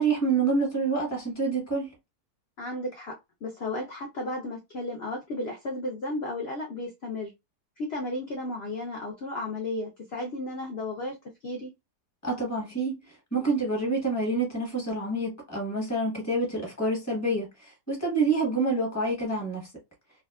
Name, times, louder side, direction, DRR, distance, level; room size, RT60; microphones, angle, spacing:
voice 1, 0.0-1.9 12.2-13.0 13.3-19.7, right 3 dB, 10° left, 0.9 m, -27 dB
voice 2, 2.6-7.3 7.8-11.2 11.4-11.7, left 2 dB, 75° left, 0.5 m, -34 dB
2.7 x 2.4 x 2.2 m
omnidirectional pair, 1.8 m